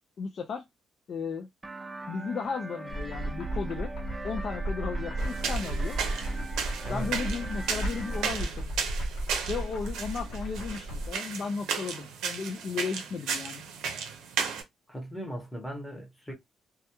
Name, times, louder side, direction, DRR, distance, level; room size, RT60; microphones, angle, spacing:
voice 1, 0.2-0.6 1.1-1.5 2.1-3.9 4.2-5.9 6.9-8.7 9.5-13.6, left 5 dB, 55° left, 0.4 m, -35 dB
sound 1, 1.6-8.3, right 2 dB, 15° right, 0.4 m, -42 dB
sound 2, 2.9-11.1, right 1 dB, 85° left, 0.9 m, -34 dB
sound 3, 5.2-14.6, right 6 dB, 85° right, 0.5 m, -35 dB
voice 2, 6.8-7.2 14.9-16.3, equal, ahead, 0.9 m, -38 dB
2.3 x 2.1 x 2.8 m
cardioid pair, 90°, 0 cm